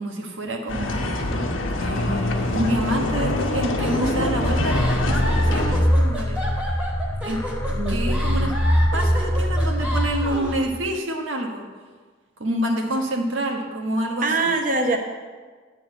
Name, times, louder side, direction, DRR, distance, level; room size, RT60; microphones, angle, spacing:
voice 1, 0.0-6.4 7.2-7.4 7.9-8.5 8.9-11.7 12.4-14.5, right 1 dB, 80° right, 2 dB, 1.3 m, -28 dB
sound 1, 0.7-5.8, left 1 dB, 90° left, 1.0 m, -24 dB
sound 2, 3.8-10.6, equal, 10° right, 1.2 m, -32 dB
sound 3, 4.4-10.9, equal, 15° left, 0.3 m, -23 dB
voice 2, 7.7-8.5 14.2-15.0, right 3 dB, 40° right, 4 dB, 0.9 m, -24 dB
10.5 x 4.1 x 7.7 m, 1.5 s
head